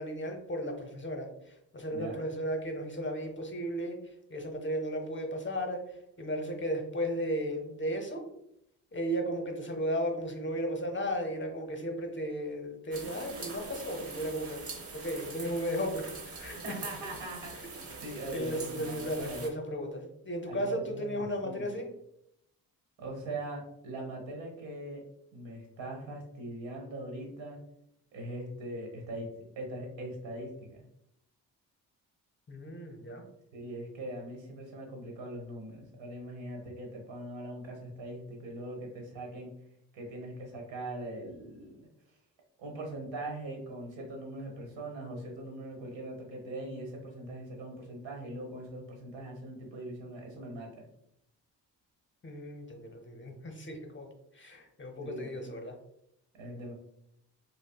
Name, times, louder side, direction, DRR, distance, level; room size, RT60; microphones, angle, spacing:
voice 1, 0.0-8.2 8.9-14.6 14.9-16.6 18.3-21.9 32.5-33.2 52.2-54.1 54.3-55.8, equal, 25° left, 4 dB, 0.7 m, -35 dB
sound 1, 12.9-19.5, right 3 dB, 30° right, 0.8 m, -43 dB
voice 2, 16.6-17.5 18.0-19.5 20.5-21.7 23.0-25.0 25.3-27.6 28.1-29.3 29.6-30.8 33.5-39.5 39.9-41.7 42.6-50.7 55.0-55.5 56.3-56.7, right 1 dB, 70° right, 2 dB, 1.1 m, -41 dB
5.0 x 2.0 x 2.2 m, 0.78 s
hypercardioid pair, 45°, 46 cm